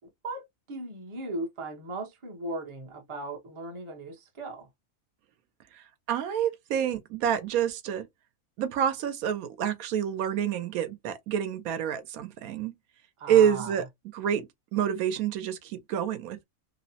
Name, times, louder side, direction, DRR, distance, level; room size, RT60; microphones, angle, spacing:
voice 1, 0.2-4.7 13.2-13.7, right 2 dB, 30° right, 0.6 m, -37 dB
voice 2, 5.7-8.0 8.6-12.7 13.3-13.9 14.1-14.5 14.7-16.4, right 9 dB, 80° right, 1.0 m, -27 dB
2.9 x 2.0 x 2.6 m
omnidirectional pair, 1.5 m